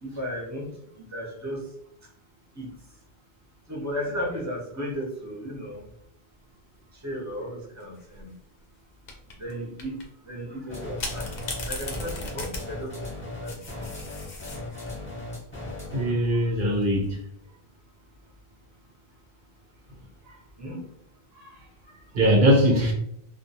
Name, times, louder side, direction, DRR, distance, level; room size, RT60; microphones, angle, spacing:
voice 1, 0.0-0.7 1.1-1.6 2.6-2.7 3.7-5.9 7.0-8.3 9.4-10.0 10.2-11.3 11.7-12.9 13.4-13.6 20.6-20.8, equal, 20° right, -3 dB, 0.5 m, -34 dB
sound 1, 7.8-8.2 9.1-9.5 9.8-10.0 11.0-15.0 16.6-17.1, left 2 dB, 55° left, 0.6 m, -37 dB
sound 2, 10.7-16.2, left 2 dB, 10° left, 0.8 m, -37 dB
voice 2, 15.9-17.2 20.3-20.4 21.4-21.5 22.1-22.9, equal, 75° right, -1 dB, 0.9 m, -21 dB
2.3 x 2.2 x 2.6 m, 0.72 s
omnidirectional pair, 1.0 m